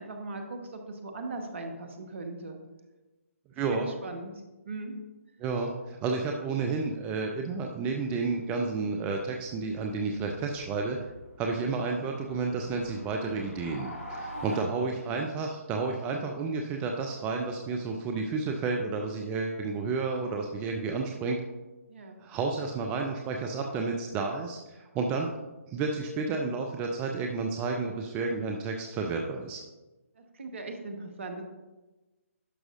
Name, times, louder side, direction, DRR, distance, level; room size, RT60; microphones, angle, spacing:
voice 1, 0.0-2.6 3.7-4.3 4.6-4.9 14.2-14.6 21.9-22.2 30.1-31.4, right 2 dB, 55° right, 5 dB, 1.2 m, -39 dB
voice 2, 3.5-3.9 5.4-11.0 11.4-21.4 22.2-25.3 25.7-29.6, right 4 dB, 15° right, 2 dB, 0.5 m, -31 dB
sound 1, 9.1-14.6, equal, 75° left, 2.4 m, -45 dB
11.5 x 6.1 x 2.6 m, 1.1 s
figure-of-eight pair, 140°, 8 cm